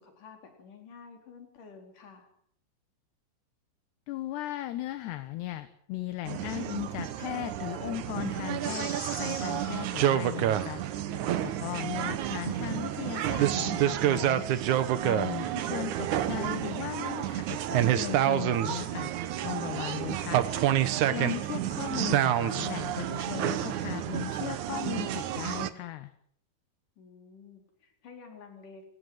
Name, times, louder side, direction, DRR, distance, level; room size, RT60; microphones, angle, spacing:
voice 1, 0.0-2.3 15.3-15.7 27.0-28.8, left 5 dB, 50° left, 4 dB, 5.6 m, -51 dB
voice 2, 4.1-8.9 9.2-10.8 11.4-14.4 15.0-19.1 19.4-20.4 21.1-26.1, left 15 dB, 75° left, 11 dB, 3.2 m, -37 dB
sound 1, 6.3-25.7, right 11 dB, 70° right, 1.9 m, -29 dB
sound 2, 8.6-11.3, right 2 dB, 10° right, 1.9 m, -42 dB
28.0 x 16.5 x 8.0 m, 0.65 s
omnidirectional pair, 5.0 m